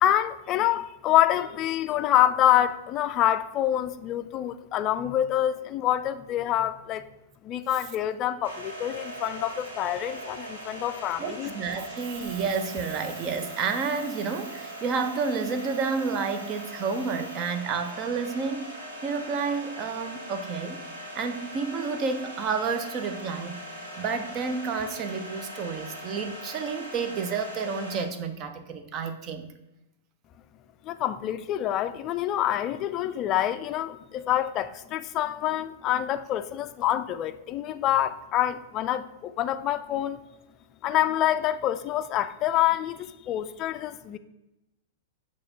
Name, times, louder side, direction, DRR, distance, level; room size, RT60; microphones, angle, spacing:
voice 1, 0.0-7.0 7.4-11.5 30.8-40.2 40.8-44.2, left 12 dB, 35° left, 0.4 m, -26 dB
sound 1, 8.4-28.0, right 1 dB, 75° right, 1.9 m, -40 dB
voice 2, 11.2-18.7 19.0-20.8 21.1-23.6 24.0-29.5, right 5 dB, 35° right, 0.7 m, -30 dB
6.3 x 3.0 x 5.6 m
figure-of-eight pair, 100°, 0 cm